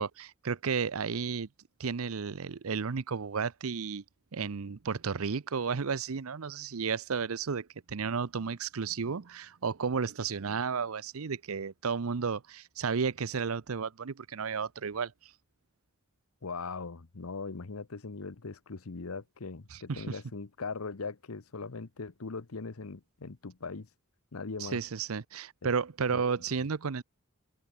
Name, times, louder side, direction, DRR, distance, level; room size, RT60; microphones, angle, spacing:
voice 1, 0.0-1.5 1.8-4.0 4.3-15.3 19.7-20.2 24.6-27.0, right 5 dB, 75° right, 0.7 m, -33 dB
voice 2, 16.4-23.9 24.3-24.8 25.6-25.7 26.1-26.2, left 4 dB, 90° left, 0.9 m, -40 dB
head